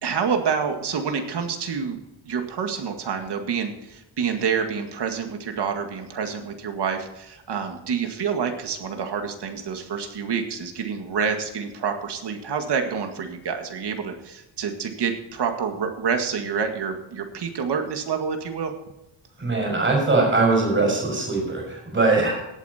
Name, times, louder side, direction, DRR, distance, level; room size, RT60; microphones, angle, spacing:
voice 1, 0.0-2.0 2.2-18.7, right 6 dB, 55° right, 5 dB, 2.0 m, -27 dB
voice 2, 19.4-22.4, right 3 dB, 25° right, -1 dB, 6.0 m, -21 dB
17.0 x 8.6 x 4.4 m, 0.90 s
wide cardioid pair, 150°, 48 cm